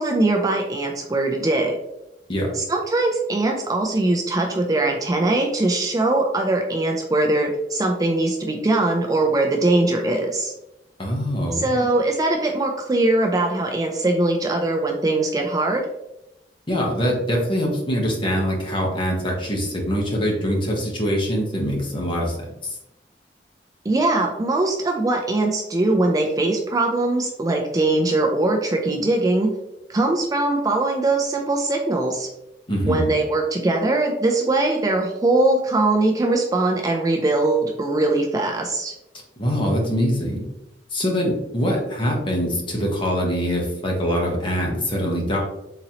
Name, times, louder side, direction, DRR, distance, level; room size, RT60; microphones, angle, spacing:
voice 1, 0.0-1.7 2.5-10.5 11.5-15.8 23.8-29.5 29.9-32.3 32.8-38.9, right 2 dB, 20° right, 2 dB, 0.3 m, -21 dB
voice 2, 11.0-11.7 16.7-22.7 32.7-33.1 39.4-40.4 40.9-45.4, equal, 30° left, -1 dB, 0.9 m, -23 dB
3.9 x 2.9 x 2.8 m, 0.89 s
head